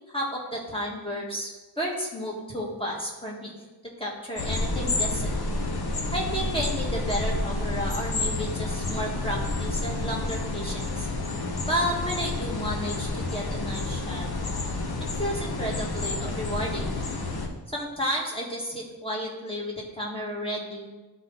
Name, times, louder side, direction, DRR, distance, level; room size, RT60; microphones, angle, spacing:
voice 1, 0.1-3.5 4.0-5.3 6.1-11.1 11.7-14.3 15.2-16.9 17.7-20.9, equal, 15° left, -3 dB, 1.9 m, -32 dB
sound 1, 4.4-17.5, left 2 dB, 70° left, 1.0 m, -29 dB
12.0 x 4.1 x 4.0 m, 1.2 s
wide cardioid pair, 80°, 39 cm